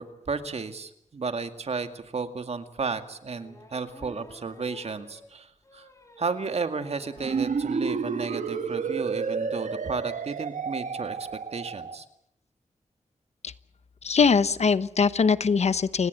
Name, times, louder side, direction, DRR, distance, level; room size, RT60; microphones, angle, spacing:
voice 1, 0.0-5.9 6.2-11.2 11.5-12.1, right 4 dB, 55° right, 9 dB, 2.1 m, -33 dB
sound 1, 2.0-2.1 3.3-7.6 8.0-8.1 8.4-8.5 8.7-8.9, left 1 dB, 25° left, 4.4 m, -52 dB
sound 2, 7.2-12.0, right 5 dB, 75° right, 1.6 m, -30 dB
voice 2, 14.0-16.1, left 5 dB, 60° left, 15 dB, 0.9 m, -22 dB
30.0 x 17.5 x 8.1 m, 0.75 s
wide cardioid pair, 105°, 13 cm